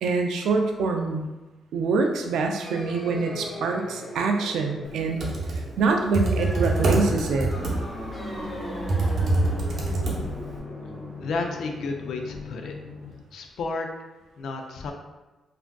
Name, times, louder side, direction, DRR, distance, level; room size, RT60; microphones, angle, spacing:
voice 1, 0.0-1.3 1.7-5.3 5.8-7.5, right 4 dB, 85° right, 4 dB, 0.3 m, -25 dB
sound 1, 2.6-13.1, left 1 dB, 30° left, 1.0 m, -37 dB
Computer keyboard, 5.0-10.6, right 2 dB, 60° right, 0.7 m, -26 dB
voice 2, 11.2-12.7 13.3-13.9 14.4-14.9, left 3 dB, 75° left, 3 dB, 0.4 m, -31 dB
3.4 x 2.4 x 2.2 m, 1.1 s
cardioid pair, 85°, 0 cm